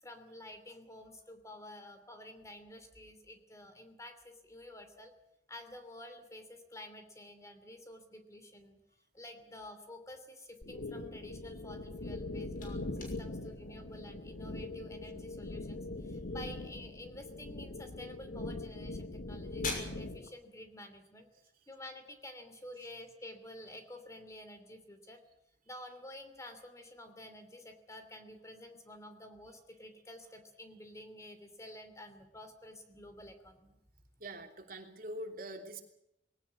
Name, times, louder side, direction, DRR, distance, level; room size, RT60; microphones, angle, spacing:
voice 1, 0.0-5.1 5.5-8.8 9.1-21.3 21.7-25.2 25.7-33.8, left 1 dB, 20° left, 8 dB, 2.9 m, -50 dB
sound 1, 10.6-20.3, left 2 dB, 80° left, 1.5 m, -42 dB
sound 2, 12.0-22.7, left 3 dB, 50° left, 6.2 m, -50 dB
voice 2, 34.2-35.8, right 1 dB, 55° right, 4 dB, 3.1 m, -44 dB
21.0 x 18.0 x 8.5 m, 0.78 s
head